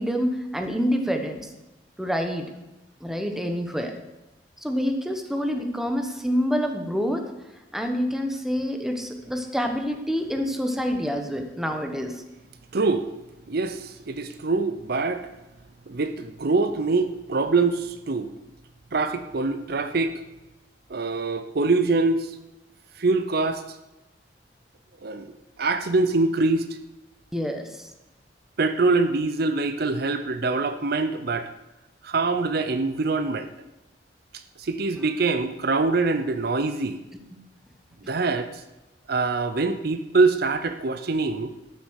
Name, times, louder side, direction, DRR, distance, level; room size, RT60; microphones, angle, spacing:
voice 1, 0.0-1.5 2.0-2.5 3.0-3.9 4.6-7.2 7.7-12.2 27.3-27.9 37.1-37.4, equal, ahead, 4 dB, 1.2 m, -27 dB
voice 2, 12.7-13.1 13.5-15.2 15.9-18.3 18.9-20.2 20.9-22.3 23.0-23.6 25.0-25.3 25.6-26.7 28.6-31.5 32.0-33.5 34.6-37.0 38.1-38.5 39.1-41.5, right 3 dB, 60° right, 10 dB, 0.7 m, -24 dB
12.5 x 6.9 x 6.4 m, 0.99 s
head